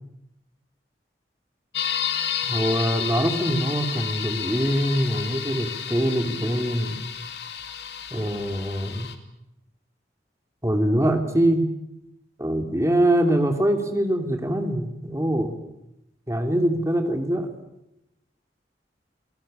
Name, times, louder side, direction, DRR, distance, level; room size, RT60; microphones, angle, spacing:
sound 1, 1.7-9.1, left 9 dB, 70° left, 2.5 m, -31 dB
voice 1, 2.4-7.0 8.1-9.1 10.6-11.6 12.4-15.6 16.3-17.5, right 1 dB, 15° right, 5 dB, 2.7 m, -23 dB
27.5 x 17.5 x 8.9 m, 0.87 s
head